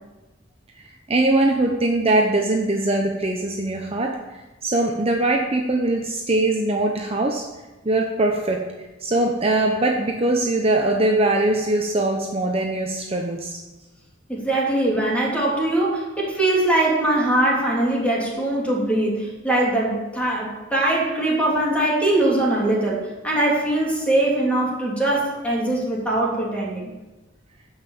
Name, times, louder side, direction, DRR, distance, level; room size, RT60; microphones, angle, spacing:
voice 1, 1.1-7.5 7.8-8.7 9.0-13.6, right 2 dB, 30° right, 1 dB, 1.0 m, -21 dB
voice 2, 14.3-26.9, right 1 dB, 5° left, -4 dB, 3.4 m, -22 dB
13.0 x 5.8 x 8.6 m, 1.1 s
head